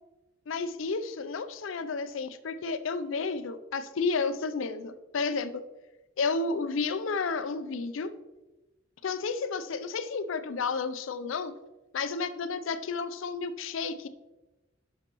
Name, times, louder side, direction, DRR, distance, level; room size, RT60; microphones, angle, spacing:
voice 1, 0.5-5.6 6.2-8.1 9.0-11.5 11.9-14.1, left 4 dB, 80° left, 11 dB, 0.5 m, -31 dB
11.0 x 5.7 x 3.0 m, 1.1 s
head